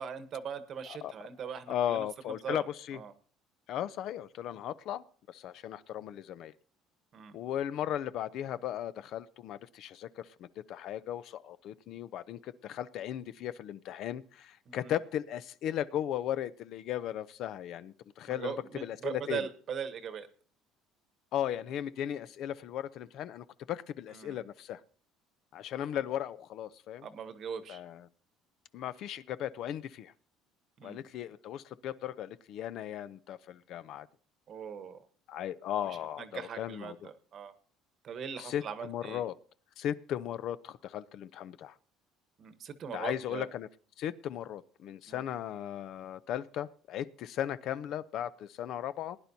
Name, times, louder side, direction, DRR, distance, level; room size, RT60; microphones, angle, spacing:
voice 1, 0.0-2.7 2.9-3.1 7.1-7.4 14.7-14.9 18.3-20.3 24.1-24.4 27.0-27.8 30.8-31.0 34.5-35.1 36.2-37.5 38.0-39.2 42.4-43.5 45.1-45.2, right 7 dB, 45° right, 11 dB, 1.1 m, -40 dB
voice 2, 1.7-3.0 3.7-6.5 7.3-18.5 18.8-19.4 21.3-24.8 25.5-27.1 27.7-28.1 28.7-30.1 30.8-34.1 35.3-37.1 38.4-39.3 39.8-41.7 42.9-43.7 44.0-49.2, left 11 dB, 60° left, 16 dB, 0.5 m, -37 dB
20.0 x 10.5 x 2.7 m, 0.42 s
cardioid pair, 130°, 0 cm